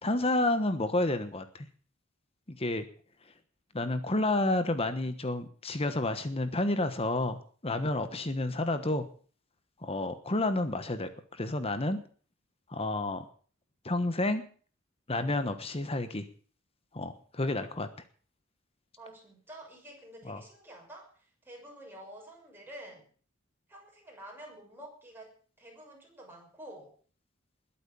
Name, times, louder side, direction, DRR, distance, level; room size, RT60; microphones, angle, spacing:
voice 1, 0.0-1.7 2.5-2.9 3.7-7.4 7.6-9.0 9.8-12.0 12.7-13.2 13.8-14.4 15.1-16.3 16.9-17.9 20.3-20.4, left 2 dB, 30° left, 10 dB, 1.2 m, -30 dB
voice 2, 19.0-23.1 23.7-26.9, right 1 dB, 10° right, -1 dB, 6.4 m, -49 dB
21.0 x 8.8 x 7.0 m, 0.44 s
head